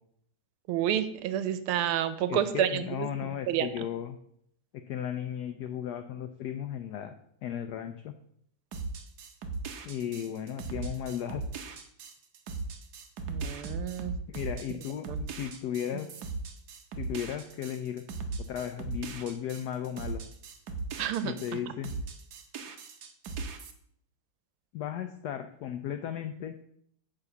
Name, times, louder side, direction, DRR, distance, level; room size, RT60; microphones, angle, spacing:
voice 1, 0.7-3.9 13.3-14.1 15.1-15.2 21.0-21.6, right 10 dB, 85° right, 12 dB, 1.6 m, -30 dB
voice 2, 2.2-4.2 4.7-7.2 7.4-8.1 9.8-11.4 14.3-15.1 15.4-16.2 17.0-18.0 18.5-20.2 21.2-21.9 24.7-26.6, left 9 dB, 80° left, 8 dB, 0.9 m, -35 dB
sound 1, 8.7-21.5 21.8-23.7, right 4 dB, 60° right, 1.2 m, -38 dB
9.1 x 3.6 x 6.8 m, 0.69 s
omnidirectional pair, 2.3 m